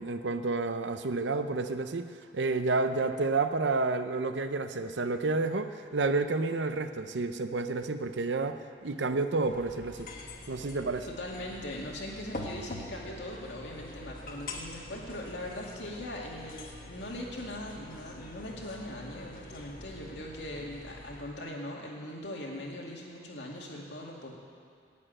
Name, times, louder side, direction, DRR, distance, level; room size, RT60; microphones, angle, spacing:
voice 1, 0.0-2.1 2.3-10.1 10.5-11.1, right 3 dB, 85° right, 9 dB, 0.7 m, -30 dB
sound 1, 9.4-21.3, left 1 dB, 50° left, 1.3 m, -45 dB
voice 2, 11.1-24.3, left 1 dB, 80° left, -2 dB, 2.2 m, -40 dB
11.0 x 8.9 x 8.9 m, 2.3 s
head